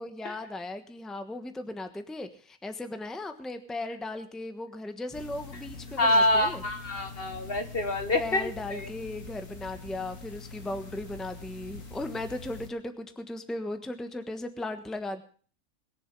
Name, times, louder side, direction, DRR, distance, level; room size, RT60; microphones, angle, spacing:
voice 1, 0.0-6.6 8.2-15.2, left 2 dB, ahead, 8 dB, 1.1 m, -37 dB
sound 1, 5.1-12.7, left 3 dB, 65° left, 2.3 m, -44 dB
voice 2, 6.0-8.9, left 1 dB, 45° left, 7 dB, 1.3 m, -26 dB
21.5 x 7.3 x 6.1 m, 0.43 s
omnidirectional pair, 1.5 m